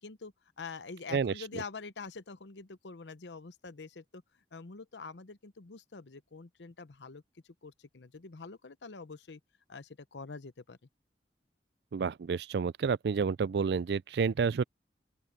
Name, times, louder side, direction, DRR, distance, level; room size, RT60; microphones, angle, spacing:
voice 1, 0.0-7.2 7.6-9.4 9.7-10.8, left 4 dB, 80° left, 0.8 m, -46 dB
voice 2, 11.9-14.6, right 5 dB, 65° right, 0.4 m, -29 dB
open air
head